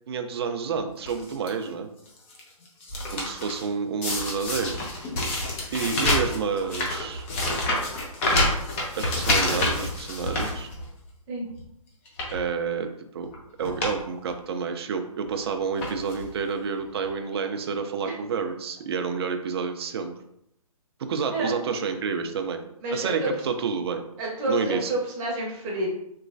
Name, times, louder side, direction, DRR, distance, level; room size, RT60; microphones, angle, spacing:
voice 1, 0.1-1.9 3.1-4.8 5.7-7.2 9.0-10.7 12.3-12.9 13.1-13.3 13.6-20.1 21.0-22.6 22.9-24.0 24.5-24.9, right 5 dB, 45° right, 6 dB, 0.4 m, -29 dB
sound 1, 1.1-1.5 2.1-3.6 4.0-11.1 11.5-11.6 12.1-12.4 13.2-13.4 13.6-14.0 14.3-14.4 15.3-15.4 15.8-16.3 17.0-17.1 17.3-17.4, left 1 dB, 20° left, 0.5 m, -27 dB
voice 2, 22.8-23.3 24.2-25.9, right 1 dB, 20° right, -3 dB, 0.8 m, -29 dB
3.1 x 2.9 x 2.5 m, 0.77 s
hypercardioid pair, 150°, 19 cm